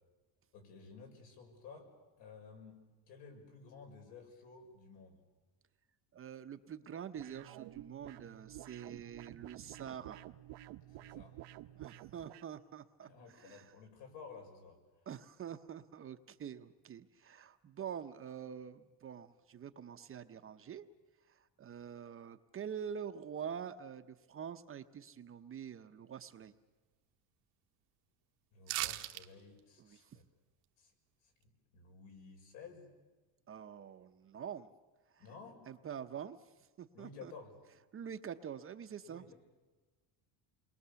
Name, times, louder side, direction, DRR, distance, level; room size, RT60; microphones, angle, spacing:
voice 1, 0.5-1.9 2.2-2.8 3.1-5.2 10.9-11.4 13.0-14.8 28.5-30.2 30.8-30.9 31.2-32.9 35.2-35.6 36.9-37.6 39.1-39.3, left 5 dB, 75° left, 3 dB, 6.1 m, -54 dB
voice 2, 6.1-10.2 11.7-13.8 15.1-20.9 21.2-26.5 29.8-30.2 33.5-34.7 35.1-35.2 35.7-37.3 37.9-39.3, right 8 dB, 30° right, 9 dB, 0.7 m, -46 dB
sound 1, 7.2-12.5, right 16 dB, 70° right, 1.0 m, -51 dB
sound 2, 28.7-29.2 29.6-29.7, right 18 dB, 85° right, 1.2 m, -37 dB
28.5 x 22.0 x 7.0 m, 1.3 s
cardioid pair, 150°, 44 cm